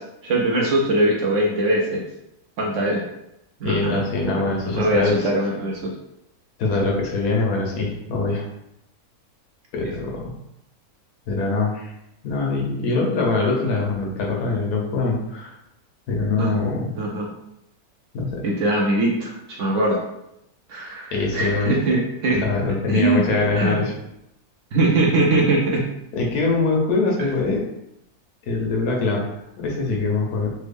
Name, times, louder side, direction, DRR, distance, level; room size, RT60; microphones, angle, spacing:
voice 1, 0.0-2.0 2.6-3.0 3.6-5.9 9.8-9.9 16.4-16.5 17.0-17.3 18.4-20.0 20.7-22.5 22.9-23.9 24.7-25.8, right 2 dB, 65° right, -1 dB, 0.8 m, -22 dB
voice 2, 3.6-5.3 6.6-8.4 9.7-10.3 11.3-11.9 12.2-15.6 16.1-16.9 18.1-18.4 21.1-21.8 22.3-23.9 26.1-27.6 28.4-29.3 29.6-30.5, left 3 dB, 80° left, -1 dB, 1.3 m, -23 dB
3.4 x 2.1 x 3.3 m, 0.83 s
omnidirectional pair, 1.6 m